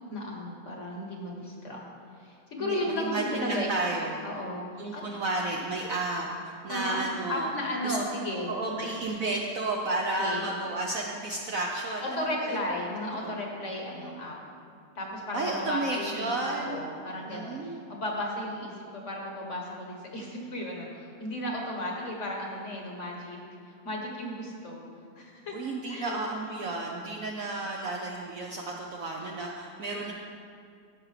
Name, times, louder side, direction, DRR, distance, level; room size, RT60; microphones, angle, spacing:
voice 1, 0.1-1.8 2.2-3.8 4.2-5.1 5.9-6.1 6.7-7.0 7.3-8.5 9.9-10.5 12.0-14.4 14.9-16.3 16.6-23.4 23.6-24.8 25.2-25.5 25.9-26.2 29.9-30.1, left 1 dB, 45° left, -1 dB, 1.2 m, -34 dB
voice 2, 2.7-4.1 4.8-7.5 7.8-8.0 8.5-12.6 13.2-13.4 15.3-16.9 17.3-17.8 25.5-30.1, right 2 dB, 65° right, -1 dB, 0.9 m, -32 dB
14.5 x 6.1 x 3.2 m, 2.3 s
omnidirectional pair, 2.0 m